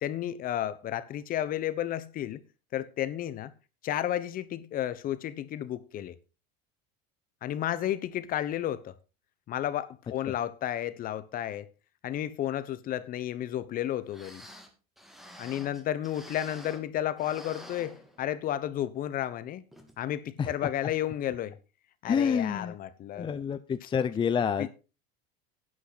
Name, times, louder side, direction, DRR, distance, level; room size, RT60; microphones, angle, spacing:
voice 1, 0.0-2.4 2.7-3.5 3.8-6.2 7.4-8.9 9.5-11.7 12.0-14.4 15.4-19.6 20.0-21.6 22.0-23.3 24.6-24.7, left 11 dB, 45° left, 1.1 m, -32 dB
sound 1, 13.8-13.9 14.1-16.9 17.2-18.6 19.0-19.1 19.7-20.0 20.4-20.5, equal, ahead, 2.7 m, -49 dB
voice 2, 22.1-22.8 23.1-24.7, left 7 dB, 25° left, 0.8 m, -28 dB
11.5 x 9.5 x 4.2 m
supercardioid pair, 110°, 20 cm